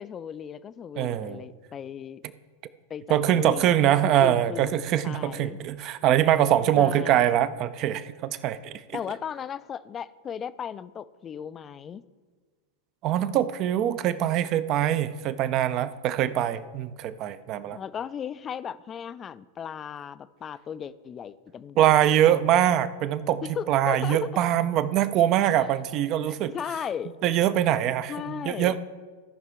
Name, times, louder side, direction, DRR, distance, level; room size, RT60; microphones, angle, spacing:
voice 1, 0.0-2.2 2.9-3.9 4.2-4.8 5.0-5.6 6.7-7.2 8.9-12.0 17.7-22.0 22.3-22.7 23.4-24.3 25.6-25.7 26.3-27.2 28.1-28.8, left 8 dB, 25° left, 15 dB, 0.4 m, -36 dB
voice 2, 1.0-1.4 3.1-8.8 13.0-17.8 21.8-23.4 23.7-26.5 27.2-28.8, right 11 dB, 40° right, 14 dB, 0.5 m, -23 dB
16.5 x 5.7 x 3.5 m, 1.5 s
figure-of-eight pair, 90°, 0 cm